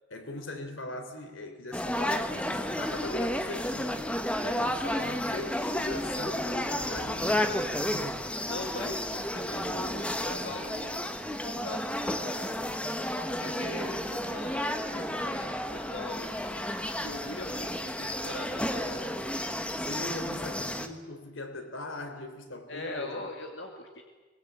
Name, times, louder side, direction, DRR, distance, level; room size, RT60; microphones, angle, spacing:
voice 1, 0.1-4.1 4.4-8.2 19.8-23.3, left 2 dB, 90° left, 3.5 m, -40 dB
sound 1, 1.7-20.9, left 1 dB, 5° left, 1.3 m, -32 dB
voice 2, 8.4-11.1 11.4-12.5 13.4-16.3 16.9-19.0 22.7-24.0, left 2 dB, 70° left, 2.5 m, -41 dB
23.5 x 21.0 x 8.7 m
head